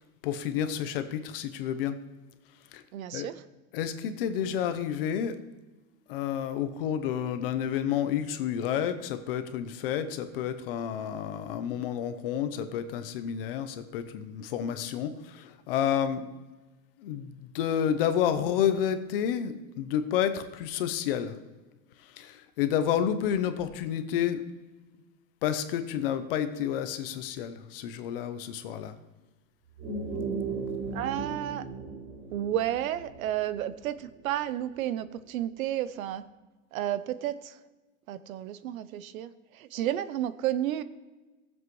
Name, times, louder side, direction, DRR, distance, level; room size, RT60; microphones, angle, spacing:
voice 1, 0.2-2.0 2.7-2.8 3.1-3.3 3.7-5.3 6.1-16.3 17.0-21.4 22.2-24.4 25.4-28.9, left 9 dB, 40° left, 9 dB, 0.7 m, -30 dB
voice 2, 2.9-3.3 30.9-31.6 32.3-36.2 36.7-37.5 38.1-39.3 39.6-40.8, right 12 dB, 75° right, 15 dB, 0.8 m, -31 dB
sound 1, 29.6-34.5, right 4 dB, 25° right, 2.8 m, -37 dB
18.0 x 7.4 x 3.1 m, 1.2 s
supercardioid pair, 175°, 42 cm